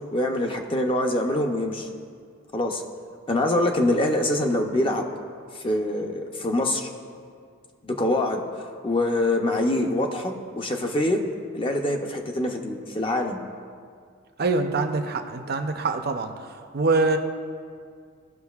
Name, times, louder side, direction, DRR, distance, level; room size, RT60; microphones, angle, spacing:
voice 1, 0.1-1.9 2.5-2.8 3.3-5.1 5.5-6.9 7.8-11.2 11.5-13.4, left 1 dB, 25° left, 3 dB, 0.6 m, -24 dB
voice 2, 14.4-16.3 16.7-17.2, right 3 dB, 50° right, 6 dB, 0.6 m, -24 dB
16.5 x 6.1 x 2.4 m, 2.1 s
head